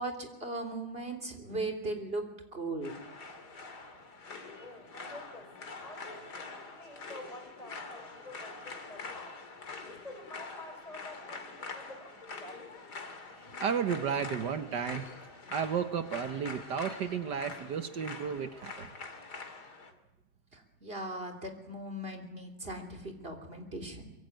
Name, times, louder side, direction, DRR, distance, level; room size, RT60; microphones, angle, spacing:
voice 1, 0.0-3.0 20.5-24.1, right 2 dB, 30° right, 4 dB, 3.5 m, -38 dB
sound 1, 2.8-19.9, left 3 dB, 60° left, 3.1 m, -45 dB
voice 2, 4.6-9.4 9.9-12.9, left 1 dB, 20° left, 5 dB, 4.3 m, -49 dB
voice 3, 13.6-15.1 15.5-18.9, right 7 dB, 70° right, 9 dB, 1.7 m, -33 dB
24.0 x 23.0 x 9.3 m, 0.96 s
omnidirectional pair, 2.0 m